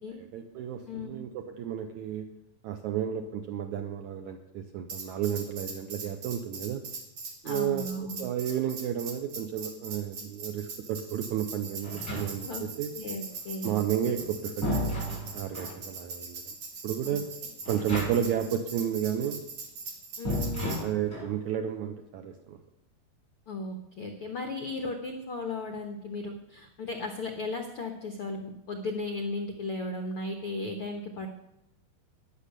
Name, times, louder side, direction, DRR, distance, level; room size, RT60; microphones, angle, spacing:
voice 1, 0.2-2.3 2.6-6.8 7.4-12.9 13.6-16.4 16.8-17.3 17.7-19.4 20.8-22.6, right 9 dB, 75° right, 6 dB, 1.8 m, -32 dB
voice 2, 0.9-1.2 7.4-8.2 12.4-12.7 12.9-13.8 17.0-17.2 20.2-20.7 23.5-31.3, left 2 dB, 70° left, 4 dB, 1.3 m, -36 dB
Tambourine, 4.9-20.8, right 4 dB, 50° right, 3.0 m, -41 dB
sound 1, 11.8-12.7 14.0-15.8 17.6-18.5 18.7-18.8 20.2-21.4, equal, 20° left, 7.1 m, -34 dB
14.0 x 10.5 x 6.6 m, 0.85 s
omnidirectional pair, 4.3 m